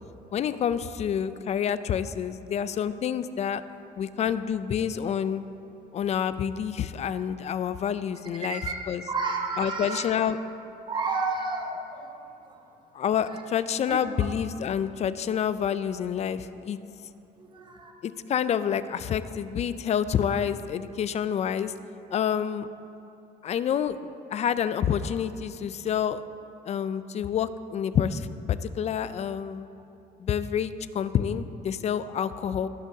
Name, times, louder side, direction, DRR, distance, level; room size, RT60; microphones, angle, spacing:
voice 1, 0.3-3.6 4.0-5.4 5.9-9.0 9.6-10.4 12.9-16.8 18.0-21.7 22.1-22.7 23.4-26.2 26.7-29.7 30.2-32.7, left 8 dB, 40° left, 14 dB, 0.4 m, -28 dB
voice 2, 8.4-8.8 9.1-10.0 10.9-12.1 13.9-14.0 17.4-17.9, right 3 dB, 25° right, 1 dB, 1.1 m, -31 dB
18.5 x 6.3 x 2.7 m, 2.8 s
cardioid pair, 110°, 17 cm